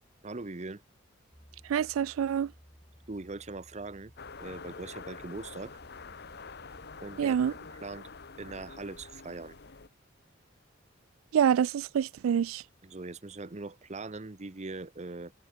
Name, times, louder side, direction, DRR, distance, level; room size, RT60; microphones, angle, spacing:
voice 1, 0.2-0.8 3.1-4.1 4.4-5.8 7.0-8.1 8.4-9.5 12.8-15.3, right 3 dB, 35° right, 0.8 m, -41 dB
Piano, 1.3-9.0, equal, 10° left, 4.4 m, -59 dB
voice 2, 1.7-2.5 7.2-7.5 11.3-12.6, right 8 dB, 80° right, 0.3 m, -26 dB
sound 1, 4.2-9.9, left 4 dB, 50° left, 1.4 m, -46 dB
head